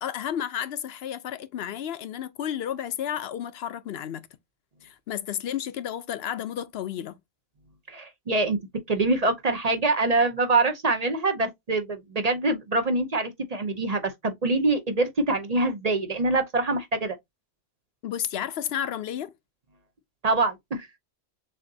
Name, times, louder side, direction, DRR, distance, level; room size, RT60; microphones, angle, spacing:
voice 1, 0.0-4.3 4.8-7.2 18.0-19.3, left 10 dB, 70° left, 0.8 m, -32 dB
voice 2, 7.9-8.6 8.9-17.2 20.2-20.9, right 2 dB, 45° right, 0.7 m, -25 dB
6.5 x 2.7 x 2.7 m
omnidirectional pair, 1.1 m